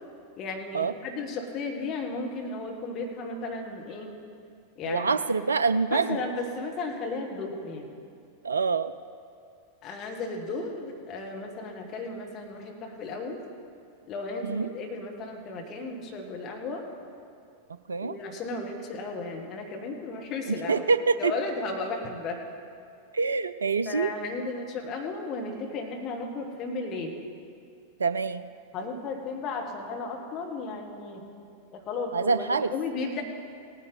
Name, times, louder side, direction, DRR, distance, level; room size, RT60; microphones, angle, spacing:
voice 1, 0.4-4.1 4.8-5.1 5.9-7.8 9.8-13.4 14.1-16.8 18.0-20.9 21.2-22.4 23.8-27.2 28.7-31.3 31.7-33.2, left 3 dB, 35° left, 1 dB, 1.7 m, -34 dB
voice 2, 4.8-6.2 8.4-8.9 14.4-14.7 17.9-18.1 20.7-21.3 23.1-24.1 28.0-28.5 32.1-32.7, right 4 dB, 75° right, 14 dB, 0.3 m, -25 dB
17.5 x 9.7 x 4.0 m, 2.4 s
figure-of-eight pair, 90°, 0 cm